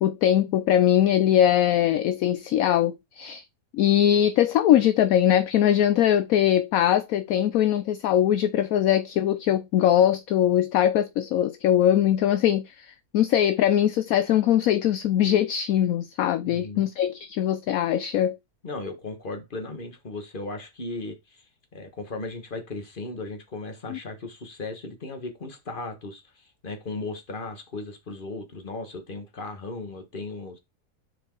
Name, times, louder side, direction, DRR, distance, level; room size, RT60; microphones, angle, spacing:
voice 1, 0.0-3.4 3.7-18.4 23.9-24.0, left 11 dB, 70° left, 1.0 m, -21 dB
voice 2, 16.4-16.8 18.6-21.4 21.7-30.6, left 3 dB, 35° left, 1.7 m, -36 dB
6.5 x 4.8 x 4.5 m
omnidirectional pair, 1.6 m